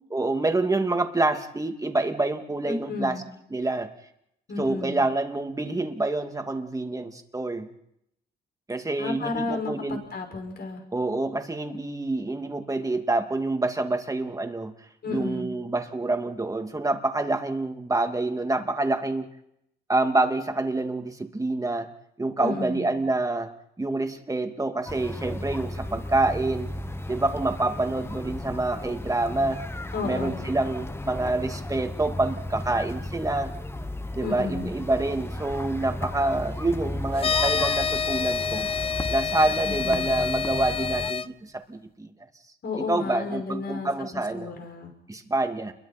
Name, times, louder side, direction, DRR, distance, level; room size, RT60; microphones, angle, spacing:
voice 1, 0.1-3.2 3.5-3.9 4.6-7.7 8.7-10.0 10.9-14.7 15.1-19.3 19.9-21.9 22.2-23.5 23.8-26.7 27.1-29.6 30.0-33.5 34.1-38.7 39.1-42.1 42.8-44.5 45.1-45.7, right 2 dB, 15° right, 5 dB, 2.6 m, -27 dB
voice 2, 2.6-3.2 4.5-5.0 9.0-10.8 15.0-15.6 22.4-22.9 29.9-30.5 34.2-34.7 39.6-40.1 42.6-44.9, left 4 dB, 55° left, 3 dB, 6.1 m, -32 dB
sound 1, 24.9-41.1, left 1 dB, 10° left, 1.2 m, -35 dB
sound 2, 37.2-41.3, left 6 dB, 30° left, 0.7 m, -27 dB
29.5 x 23.0 x 4.5 m, 0.77 s
cardioid pair, 90°, 20 cm